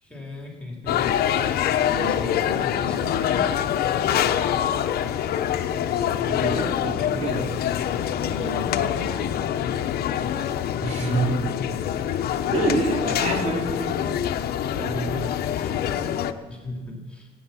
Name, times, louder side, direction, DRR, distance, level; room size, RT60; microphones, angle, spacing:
voice 1, 0.0-1.5 1.8-3.4 8.1-9.5 16.5-17.3, left 1 dB, 5° left, -1 dB, 3.5 m, -37 dB
sound 1, 0.9-16.3, left 10 dB, 65° left, 1.0 m, -25 dB
voice 2, 6.4-7.5 10.8-11.6 12.5-14.1 14.7-15.2, right 2 dB, 40° right, -1 dB, 4.1 m, -27 dB
23.0 x 9.3 x 5.9 m, 1.2 s
cardioid pair, 110°, 17 cm